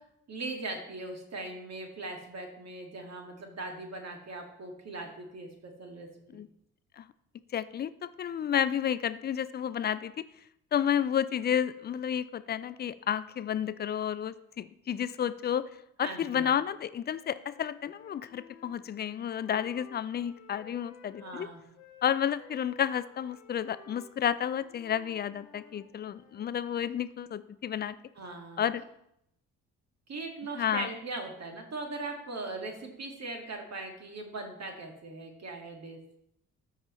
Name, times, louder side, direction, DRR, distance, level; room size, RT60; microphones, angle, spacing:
voice 1, 0.0-6.4 16.0-16.5 21.2-21.6 28.2-28.6 30.1-36.0, right 2 dB, 40° right, 3 dB, 2.0 m, -40 dB
voice 2, 7.5-10.1 10.7-15.6 16.0-21.5 22.0-28.0 28.6-28.8 30.6-30.9, left 9 dB, 25° left, 16 dB, 0.4 m, -31 dB
Wind instrument woodwind instrument, 17.0-21.4 21.7-26.6, left 5 dB, 75° left, 1.5 m, -55 dB
13.0 x 5.3 x 3.1 m, 0.78 s
figure-of-eight pair, 40°, 42 cm